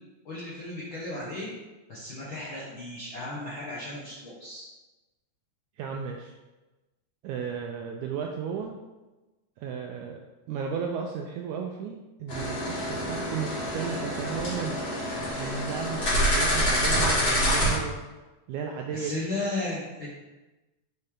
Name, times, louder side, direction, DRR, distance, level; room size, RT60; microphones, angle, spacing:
voice 1, 0.2-1.5 1.9-4.6 18.9-20.1, left 2 dB, 65° left, -6 dB, 1.2 m, -35 dB
voice 2, 5.8-6.3 7.2-8.7 9.6-10.2 10.5-14.8 15.3-18.0 18.5-19.3, right 6 dB, 80° right, 2 dB, 1.7 m, -34 dB
sound 1, 12.3-17.8, equal, 30° left, 2.4 m, -26 dB
7.7 x 5.3 x 3.7 m, 1.1 s
omnidirectional pair, 4.0 m